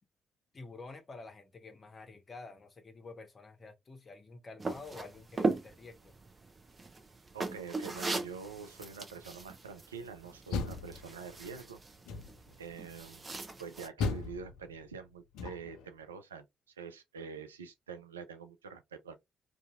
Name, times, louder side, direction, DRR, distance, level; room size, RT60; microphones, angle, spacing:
voice 1, 0.5-6.2, left 3 dB, 35° left, 0.8 m, -49 dB
sound 1, 4.6-13.9, right 3 dB, 30° right, 0.6 m, -39 dB
voice 2, 7.3-11.8 12.6-19.2, right 6 dB, 85° right, 0.3 m, -46 dB
Door, 10.3-11.5 12.1-12.6 14.0-15.9, left 4 dB, 65° left, 0.4 m, -38 dB
2.6 x 2.5 x 2.3 m
figure-of-eight pair, 45°, 0 cm